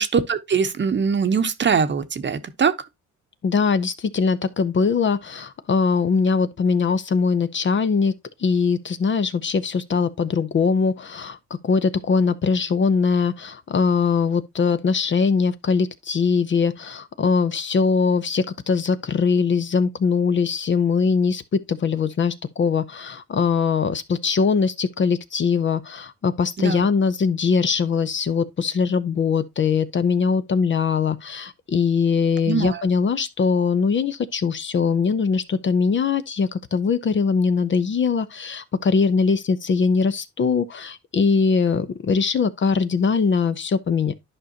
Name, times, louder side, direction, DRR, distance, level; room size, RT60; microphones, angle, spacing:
voice 1, 0.0-2.7 26.6-26.8 32.5-32.8, right 6 dB, 40° right, 0.9 m, -22 dB
voice 2, 3.4-8.1 8.4-11.4 11.6-44.1, left 5 dB, 40° left, 0.7 m, -21 dB
11.0 x 5.1 x 2.8 m
cardioid pair, 90°, 30 cm